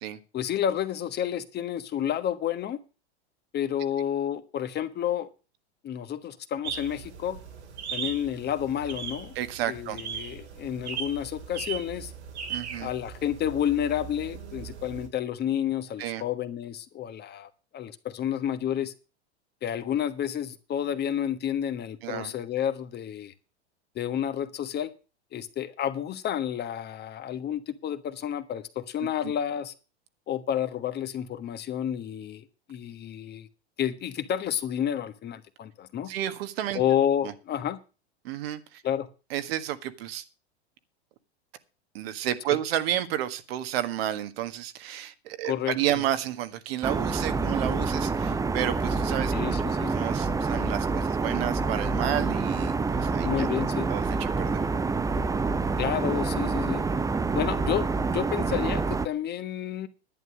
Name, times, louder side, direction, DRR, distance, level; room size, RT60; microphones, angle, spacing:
voice 1, 0.3-2.8 3.5-5.3 5.8-7.4 7.9-9.3 9.7-12.1 12.8-18.9 19.6-23.3 23.9-24.9 25.3-29.7 30.3-33.5 33.8-36.1 36.7-37.8 38.8-39.1 42.5-42.6 45.4-45.8 49.3-49.9 53.2-53.9 55.8-56.8 57.3-59.9, left 10 dB, 30° left, 11 dB, 1.4 m, -30 dB
sound 1, 6.6-15.1, right 7 dB, 85° right, 3.1 m, -38 dB
voice 2, 9.3-10.0 12.5-12.9 16.0-16.2 22.0-22.3 29.2-29.3 36.1-36.8 37.2-37.3 38.2-38.8 39.3-40.2 41.9-49.5 49.9-53.5 53.9-54.7, right 12 dB, 65° right, 11 dB, 1.7 m, -31 dB
sound 2, 46.8-59.1, right 4 dB, 10° right, 0.6 m, -27 dB
11.0 x 9.4 x 6.2 m, 0.32 s
hypercardioid pair, 110°, 33 cm